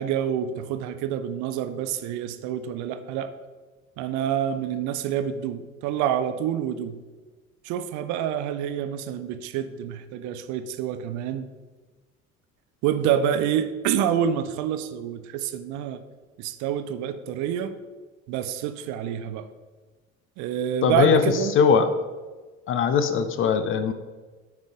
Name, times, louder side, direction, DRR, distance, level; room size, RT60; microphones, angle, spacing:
voice 1, 0.0-3.3 4.0-7.0 7.6-11.5 12.8-16.0 16.4-17.7 18.3-19.5 20.4-21.5, right 9 dB, 45° right, 11 dB, 0.6 m, -27 dB
voice 2, 20.8-21.2 21.5-21.9 22.7-23.9, left 6 dB, 30° left, 11 dB, 0.5 m, -20 dB
8.9 x 5.3 x 3.7 m, 1.3 s
figure-of-eight pair, 60°, 41 cm